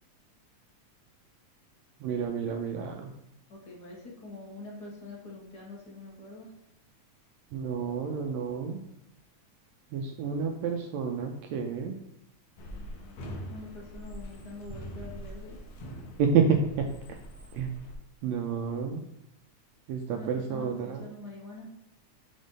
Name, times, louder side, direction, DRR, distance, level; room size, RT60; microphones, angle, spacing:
voice 1, 2.0-3.1 7.5-8.8 9.9-11.9 16.2-16.9 17.5-17.7 18.2-19.0 19.9-21.0, right 6 dB, 80° right, 3 dB, 1.7 m, -29 dB
voice 2, 3.5-6.5 13.5-15.6 20.1-21.7, left 2 dB, 50° left, -3 dB, 1.3 m, -44 dB
sound 1, 12.6-17.9, equal, 70° left, 2.0 m, -43 dB
6.4 x 3.5 x 5.2 m, 0.84 s
omnidirectional pair, 3.5 m